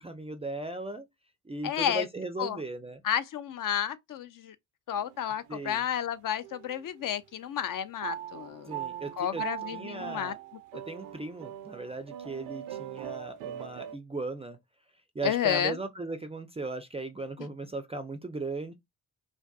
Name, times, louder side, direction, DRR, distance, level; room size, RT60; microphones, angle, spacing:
voice 1, 0.0-1.1 1.5-3.0 5.5-5.8 8.7-9.4 9.7-10.4 10.9-14.6 15.2-18.7, right 2 dB, 15° right, 0.4 m, -37 dB
voice 2, 1.6-2.1 2.4-2.6 3.0-4.6 4.9-8.8 9.2-10.3 15.2-15.8, left 9 dB, 45° left, 0.4 m, -31 dB
sound 1, 5.0-5.7 6.4-7.0 8.0-14.0, right 11 dB, 70° right, 0.5 m, -41 dB
2.5 x 2.5 x 2.2 m
hypercardioid pair, 50°, 47 cm